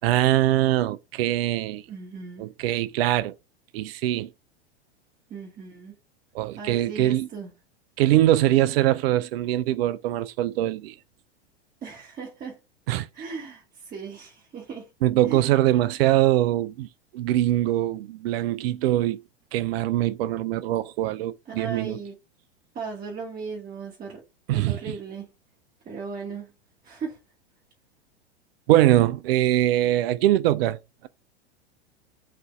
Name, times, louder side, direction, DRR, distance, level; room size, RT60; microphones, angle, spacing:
voice 1, 0.0-1.8 2.4-3.3 3.7-4.3 6.3-7.3 8.0-11.0 12.9-13.1 15.0-16.9 17.1-19.2 19.5-22.0 24.5-24.8 28.7-31.1, right 14 dB, 65° right, 0.4 m, -22 dB
voice 2, 1.9-2.5 5.3-6.0 6.5-7.5 11.8-12.6 13.1-14.9 15.3-15.5 21.5-22.2 22.7-24.2 24.5-25.3 25.8-26.5 26.8-27.2, right 5 dB, 25° right, 1.2 m, -37 dB
4.2 x 2.6 x 4.3 m
hypercardioid pair, 100°, 33 cm